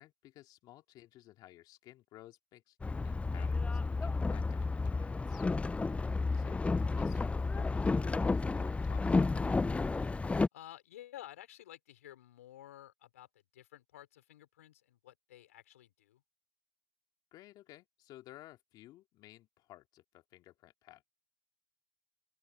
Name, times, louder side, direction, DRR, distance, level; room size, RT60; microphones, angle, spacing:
voice 1, 0.0-5.4 6.3-6.6 7.0-9.5 17.3-21.2, left 15 dB, 60° left, 2.4 m, -56 dB
Boat Water vehicle, 2.8-10.5, left 3 dB, 15° left, 0.4 m, -31 dB
voice 2, 10.5-16.2, left 13 dB, 85° left, 4.8 m, -53 dB
open air
hypercardioid pair, 65°, 8 cm